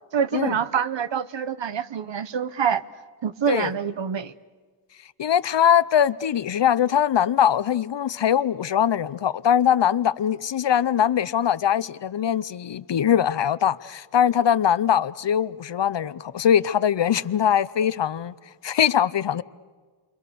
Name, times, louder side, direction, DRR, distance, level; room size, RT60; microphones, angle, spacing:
voice 1, 0.1-2.8 3.2-4.3, right 7 dB, 65° right, 0.9 m, -26 dB
voice 2, 5.2-18.3 18.6-19.4, left 9 dB, 60° left, 0.7 m, -22 dB
30.0 x 23.0 x 6.9 m
wide cardioid pair, 115°, 48 cm